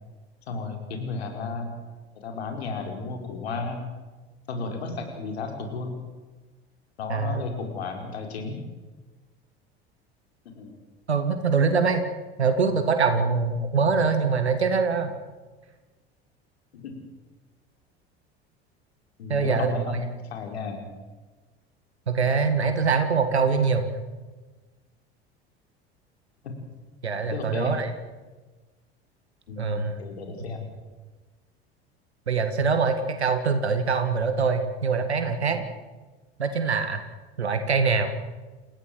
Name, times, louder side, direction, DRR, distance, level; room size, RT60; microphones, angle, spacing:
voice 1, 0.5-1.8 2.1-3.8 4.5-6.0 7.0-8.6 10.4-10.8 16.7-17.0 19.2-20.9 26.4-26.5 27.3-27.8 29.5-30.7, left 4 dB, 75° left, 4 dB, 5.0 m, -33 dB
voice 2, 7.1-7.4 11.1-12.0 12.4-15.2 19.3-19.7 22.1-23.9 27.0-27.9 29.6-30.0 32.3-35.7 36.4-37.0 37.4-38.1, right 5 dB, 80° right, 7 dB, 1.9 m, -23 dB
29.5 x 16.0 x 7.8 m, 1.3 s
figure-of-eight pair, 70°, 32 cm